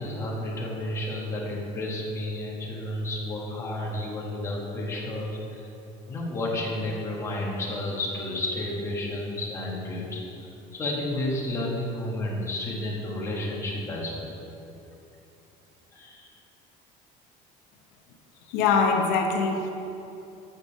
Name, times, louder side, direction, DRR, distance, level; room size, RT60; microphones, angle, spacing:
voice 1, 0.0-5.7 6.1-14.3 15.9-16.3, left 1 dB, 15° left, -4 dB, 1.2 m, -31 dB
voice 2, 18.5-19.7, left 5 dB, 80° left, 3 dB, 0.7 m, -23 dB
6.8 x 5.2 x 7.1 m, 2.8 s
cardioid pair, 180°, 16 cm